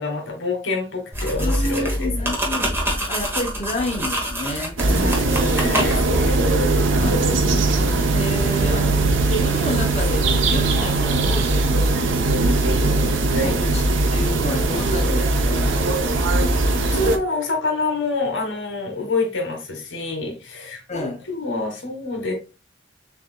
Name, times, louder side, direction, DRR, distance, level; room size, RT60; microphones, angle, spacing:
voice 1, 0.0-2.3 4.9-6.4 13.3-13.6 16.4-22.3, left 3 dB, 75° left, 1.3 m, -27 dB
sound 1, 1.1-6.2, equal, 10° right, 1.0 m, -26 dB
voice 2, 1.4-4.8 5.2-5.5 5.9-6.2 6.6-7.7 8.1-11.9 13.4-15.8 20.9-21.2, left 1 dB, 35° left, 0.8 m, -30 dB
sound 2, 4.8-17.2, right 2 dB, 75° right, 0.7 m, -20 dB
6.6 x 2.7 x 2.2 m
head